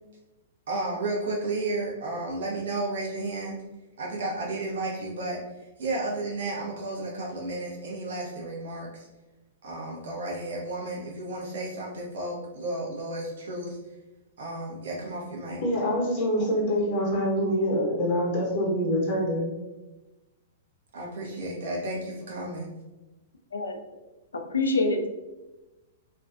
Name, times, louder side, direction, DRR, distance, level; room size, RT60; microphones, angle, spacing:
voice 1, 0.7-3.6 4.0-5.4 5.8-9.1 9.6-13.8 14.4-15.6 20.9-22.7, right 2 dB, 65° right, 0.6 m, -32 dB
voice 2, 15.6-19.4, equal, 55° left, 0.8 m, -25 dB
voice 3, 24.3-25.1, left 2 dB, 80° left, 0.4 m, -26 dB
2.4 x 2.2 x 2.3 m
figure-of-eight pair, 110°, 0 cm